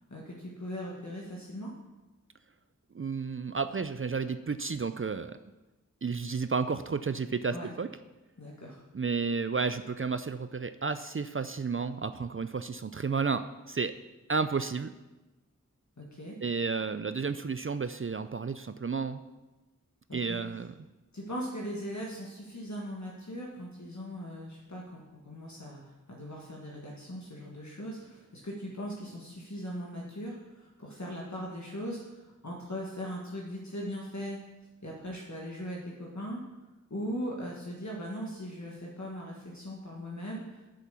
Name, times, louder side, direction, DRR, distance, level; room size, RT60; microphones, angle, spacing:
voice 1, 0.1-1.7 7.5-7.7 8.4-8.8 16.0-16.3 20.1-20.4 21.1-34.4 34.8-36.4 36.9-40.7, equal, 65° left, -3 dB, 1.6 m, -39 dB
voice 2, 2.9-5.4 6.0-7.9 8.9-13.9 14.3-14.9 16.4-19.2 20.1-20.7, right 5 dB, 45° right, 11 dB, 0.4 m, -32 dB
7.6 x 6.8 x 7.0 m, 1.1 s
wide cardioid pair, 40°, 31 cm